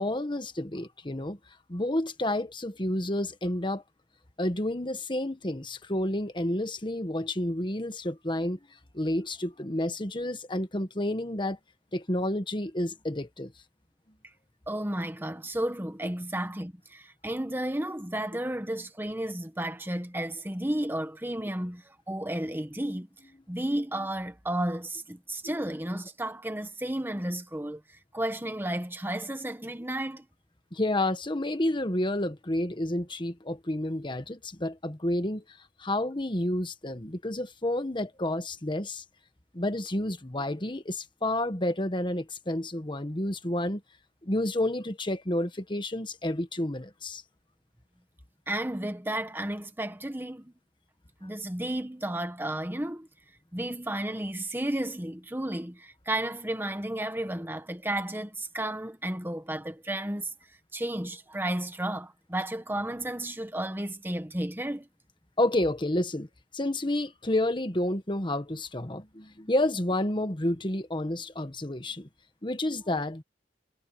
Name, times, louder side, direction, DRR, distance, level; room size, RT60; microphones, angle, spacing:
voice 1, 0.0-1.4 1.7-3.8 4.4-8.6 8.9-11.6 11.9-13.5 25.4-25.5 30.7-35.4 35.8-39.0 39.5-43.8 44.2-47.2 65.4-66.3 66.5-72.1 72.4-73.2, left 1 dB, 30° left, 1.4 m, -30 dB
voice 2, 14.7-23.1 23.5-30.2 48.5-50.5 51.2-53.1 53.5-60.3 60.7-64.9, right 1 dB, 10° right, 1.4 m, -33 dB
head